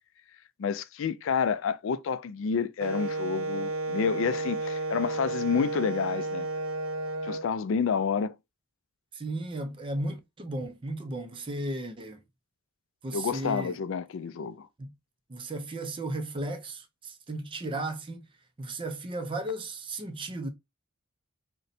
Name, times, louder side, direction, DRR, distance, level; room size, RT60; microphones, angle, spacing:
voice 1, 0.6-6.5 7.2-8.3 13.1-14.7, left 6 dB, 60° left, 0.3 m, -29 dB
Wind instrument woodwind instrument, 2.8-7.4, right 2 dB, 75° right, 0.7 m, -32 dB
voice 2, 9.1-12.2 13.0-13.8 14.8-14.9 15.3-18.3 18.6-20.5, right 1 dB, 25° right, 0.4 m, -35 dB
3.8 x 2.1 x 4.0 m
head